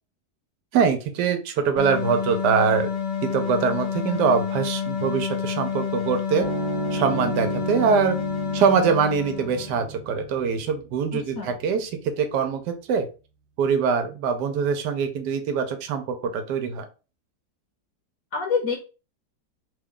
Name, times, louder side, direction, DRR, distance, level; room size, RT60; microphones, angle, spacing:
voice 1, 0.7-2.9 3.3-6.5 6.9-8.2 8.5-11.9 12.2-13.1 13.6-16.9, right 6 dB, 90° right, 7 dB, 1.2 m, -23 dB
sound 1, 1.8-9.9, left 7 dB, 85° left, 1.4 m, -29 dB
sound 2, 6.4-13.1, right 8 dB, 60° right, 0.9 m, -36 dB
voice 2, 11.1-11.5 18.3-18.8, left 5 dB, 65° left, 2 dB, 1.0 m, -26 dB
3.2 x 2.3 x 3.6 m, 0.33 s
omnidirectional pair, 1.8 m